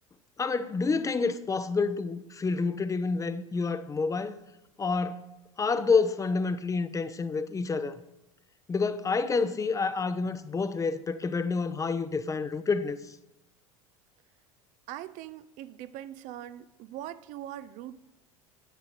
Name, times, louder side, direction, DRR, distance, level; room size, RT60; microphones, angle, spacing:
voice 1, 0.4-4.3 4.8-5.3 5.6-8.0 8.7-13.1, left 4 dB, 20° left, 0.7 m, -28 dB
voice 2, 14.9-18.0, right 12 dB, 50° right, 0.5 m, -41 dB
9.9 x 9.1 x 4.5 m
figure-of-eight pair, 75°, 17 cm